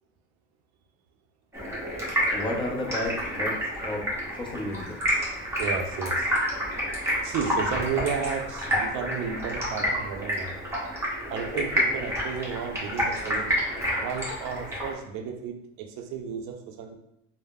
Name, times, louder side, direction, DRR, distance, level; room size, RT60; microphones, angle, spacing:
Stream, 1.5-14.9, equal, 5° right, 0.9 m, -29 dB
voice 1, 2.3-3.6 3.8-4.0 4.4-5.0, left 1 dB, 15° left, -1 dB, 0.5 m, -31 dB
voice 2, 5.6-6.3 6.6-6.7 7.2-10.6 11.3-13.6 14.0-16.9, right 6 dB, 55° right, 4 dB, 0.5 m, -33 dB
3.2 x 2.0 x 2.3 m, 0.81 s
supercardioid pair, 105°, 35 cm